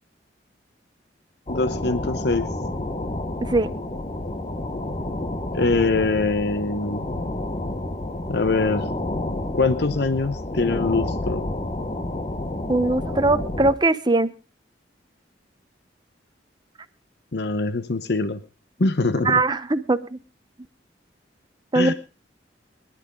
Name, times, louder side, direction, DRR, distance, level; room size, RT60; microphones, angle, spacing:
voice 1, 1.5-2.5 5.5-7.1 8.3-8.9 9.5-11.5 17.3-18.4 18.8-19.4 21.7-21.9, left 3 dB, 60° left, 12 dB, 0.9 m, -23 dB
sound 1, 1.5-13.8, left 1 dB, 30° left, 1.0 m, -30 dB
voice 2, 3.4-3.7 12.7-14.3 19.2-20.2 21.7-21.9, right 2 dB, 25° right, 11 dB, 0.8 m, -21 dB
22.5 x 11.0 x 3.7 m, 0.32 s
head